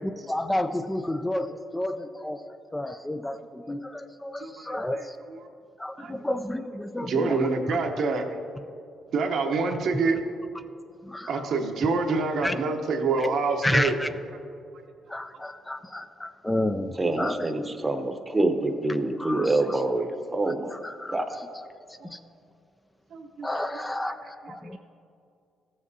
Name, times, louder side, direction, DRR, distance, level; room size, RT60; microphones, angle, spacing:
voice 1, 0.3-5.2 5.8-7.8 11.0-11.6 12.4-12.5 13.2-13.3 13.6-14.1 15.1-17.5 19.2-19.8 20.5-21.5 21.9-22.2 23.4-24.8, left 1 dB, 10° left, 9 dB, 0.3 m, -31 dB
voice 2, 4.4-4.7 6.0-6.1 7.0-8.3 9.1-10.2 11.3-14.0 23.1-23.5 23.7-24.1, right 4 dB, 70° right, 4 dB, 0.9 m, -26 dB
voice 3, 17.0-20.8 21.1-21.4, right 2 dB, 20° right, 6 dB, 0.8 m, -26 dB
14.0 x 7.6 x 2.7 m, 2.5 s
cardioid pair, 90°, 0 cm